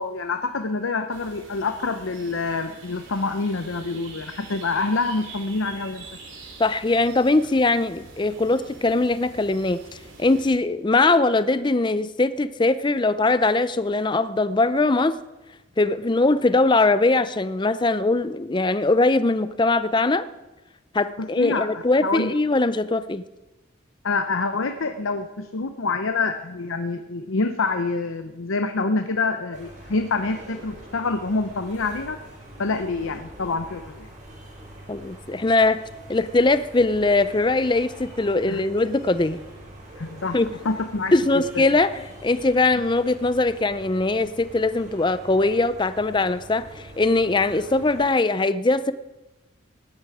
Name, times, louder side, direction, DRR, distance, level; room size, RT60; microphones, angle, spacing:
voice 1, 0.0-6.1 21.2-22.3 24.0-32.2 32.6-34.1 38.5-38.6 40.0-40.4 40.6-41.6, left 3 dB, 85° left, 7 dB, 0.8 m, -26 dB
sound 1, 1.1-10.6, right 3 dB, 70° right, 3.2 m, -45 dB
voice 2, 6.6-9.8 10.2-15.2 15.8-20.2 20.9-23.2 34.9-39.4 40.3-40.5 41.1-48.9, left 2 dB, 25° left, 13 dB, 0.5 m, -21 dB
sound 2, 29.5-48.1, right 1 dB, 40° right, 4.8 m, -44 dB
17.5 x 12.0 x 4.8 m, 1.1 s
head